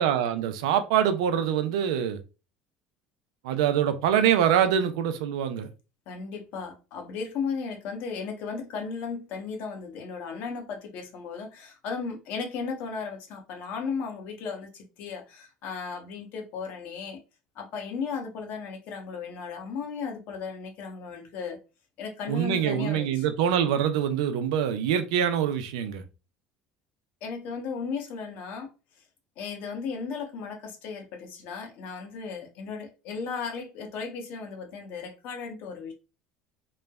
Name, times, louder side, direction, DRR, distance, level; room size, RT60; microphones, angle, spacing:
voice 1, 0.0-2.2 3.4-5.7 22.3-26.0, right 9 dB, 90° right, 0.4 m, -24 dB
voice 2, 6.1-17.2 17.6-21.6 22.0-23.2 27.2-28.7 29.4-35.9, left 5 dB, 65° left, 0.8 m, -35 dB
3.1 x 2.1 x 2.2 m
supercardioid pair, 105°, 3 cm